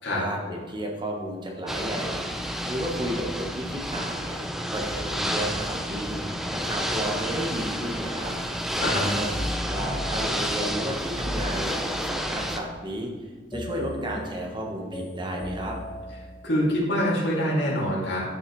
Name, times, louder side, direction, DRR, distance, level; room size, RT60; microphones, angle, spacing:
voice 1, 0.2-2.2 2.6-4.4 4.7-6.2 6.5-8.3 9.1-13.1 13.5-15.8, right 1 dB, 25° right, 0 dB, 1.2 m, -33 dB
Ocean / Boat Water vehicle, 1.7-12.6, equal, ahead, 0.5 m, -30 dB
sound 1, 9.3-12.3 13.5-16.8, left 1 dB, 20° left, 0.8 m, -36 dB
voice 2, 16.4-18.2, equal, 65° left, -5 dB, 2.4 m, -25 dB
9.4 x 6.5 x 3.1 m, 1.4 s
head